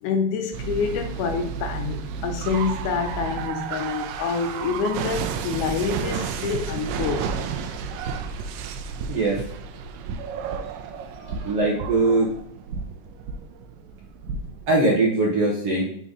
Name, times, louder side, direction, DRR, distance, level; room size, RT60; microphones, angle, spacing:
voice 1, 0.0-7.4 11.2-11.6, left 5 dB, 80° left, 5 dB, 1.9 m, -27 dB
sound 1, 0.5-14.7, right 6 dB, 85° right, 2.2 m, -32 dB
voice 2, 9.1-9.4 11.4-12.3 14.7-15.8, right 2 dB, 65° right, -3 dB, 1.5 m, -21 dB
5.6 x 3.9 x 4.8 m, 0.67 s
omnidirectional pair, 3.8 m